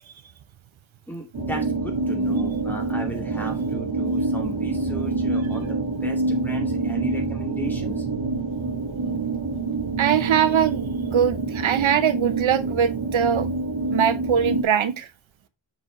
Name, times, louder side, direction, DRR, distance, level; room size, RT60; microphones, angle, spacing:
voice 1, 1.1-8.1, right 1 dB, 5° left, 2.4 m, -35 dB
sound 1, 1.3-14.6, right 3 dB, 60° right, 1.7 m, -26 dB
voice 2, 10.0-13.5 13.9-15.1, right 8 dB, 90° right, 0.9 m, -22 dB
7.6 x 6.3 x 3.2 m
wide cardioid pair, 155°, 46 cm